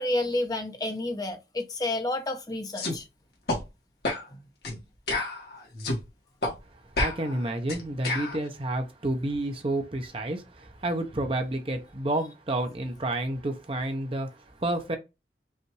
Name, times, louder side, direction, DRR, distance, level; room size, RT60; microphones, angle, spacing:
voice 1, 0.0-3.0 4.3-4.4, left 2 dB, 20° left, 0.7 m, -30 dB
sound 1, 2.8-3.0 3.5-3.6 4.0-4.3 4.6-4.8 5.1-6.0 6.4-6.6 7.0-8.4, left 2 dB, 60° left, 1.5 m, -29 dB
voice 2, 7.0-14.3 14.6-15.0, right 1 dB, 30° right, 0.7 m, -30 dB
5.4 x 2.5 x 3.1 m
head